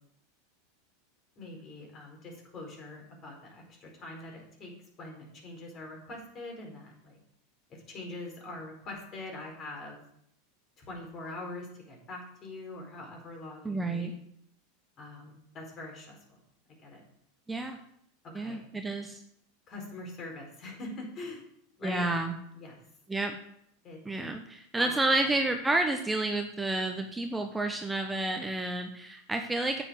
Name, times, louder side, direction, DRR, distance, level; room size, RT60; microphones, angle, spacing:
voice 1, 1.4-4.7 5.0-7.2 7.7-10.0 10.8-14.1 15.0-16.4 16.8-17.0 18.2-18.6 19.7-21.4 21.8-22.1 22.5-22.8 23.8-24.0 24.7-25.3, left 2 dB, 35° left, 1 dB, 4.5 m, -43 dB
voice 2, 13.6-14.1 17.5-17.8 18.3-19.2 21.8-22.3 23.1-23.3 24.0-29.8, right 2 dB, 10° right, 5 dB, 1.0 m, -30 dB
8.8 x 8.1 x 6.4 m, 0.71 s
hypercardioid pair, 85°, 0 cm